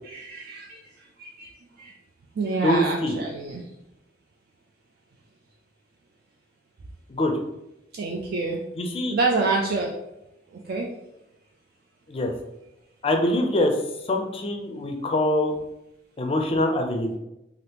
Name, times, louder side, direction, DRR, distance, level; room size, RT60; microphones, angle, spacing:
voice 1, 0.0-0.8 1.2-1.5 1.8-1.9 2.4-3.6 7.9-8.6 9.1-9.9 10.5-10.9, right 3 dB, 55° right, -1 dB, 0.3 m, -27 dB
voice 2, 2.6-3.2 7.1-7.3 8.8-9.2 12.1-12.3 13.0-13.8 14.1-15.5 16.2-17.2, left 1 dB, 30° left, 4 dB, 0.4 m, -24 dB
2.9 x 2.4 x 3.3 m, 0.89 s
head